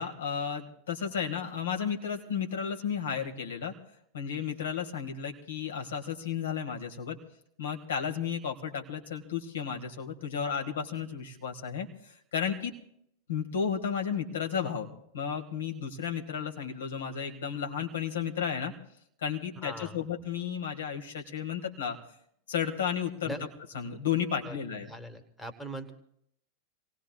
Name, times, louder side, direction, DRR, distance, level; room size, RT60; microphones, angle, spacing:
voice 1, 0.0-3.7 4.1-7.2 7.6-12.7 13.3-18.7 19.2-22.0 22.5-23.3 23.7-24.9, left 7 dB, 65° left, 3 dB, 1.9 m, -33 dB
voice 2, 19.6-20.0 23.2-23.4 24.4-24.5 24.8-25.9, right 1 dB, 5° left, 6 dB, 1.5 m, -40 dB
27.0 x 18.5 x 2.4 m, 0.71 s
figure-of-eight pair, 90°, 0 cm